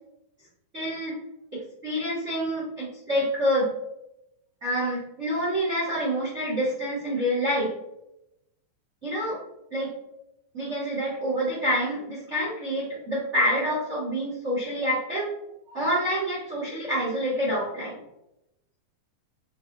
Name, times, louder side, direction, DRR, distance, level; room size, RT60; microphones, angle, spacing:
voice 1, 0.7-1.2 1.8-3.7 4.6-7.7 9.0-9.4 9.7-9.9 10.5-15.3 15.7-18.0, equal, 65° right, -7 dB, 0.7 m, -27 dB
6.0 x 3.0 x 2.5 m, 0.85 s
omnidirectional pair, 4.1 m